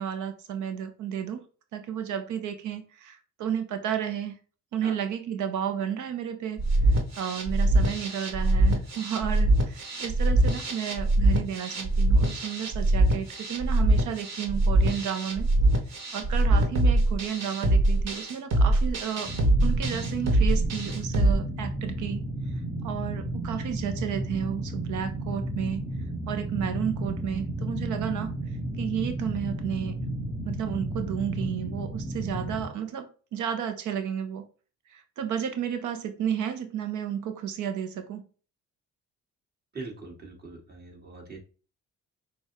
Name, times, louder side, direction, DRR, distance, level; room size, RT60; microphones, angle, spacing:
voice 1, 0.0-1.4 1.7-4.3 4.7-15.5 16.1-19.3 19.6-22.3 22.8-25.8 26.3-28.3 28.8-30.0 30.4-34.5 34.9-38.2, right 8 dB, 80° right, 0.7 m, -32 dB
sound 1, 6.6-21.3, right 1 dB, 60° right, 1.5 m, -23 dB
sound 2, 19.2-32.6, right 1 dB, 10° right, 2.0 m, -33 dB
voice 2, 39.7-41.4, right 3 dB, 30° right, 2.0 m, -42 dB
6.2 x 2.4 x 3.5 m
cardioid pair, 90°, 30 cm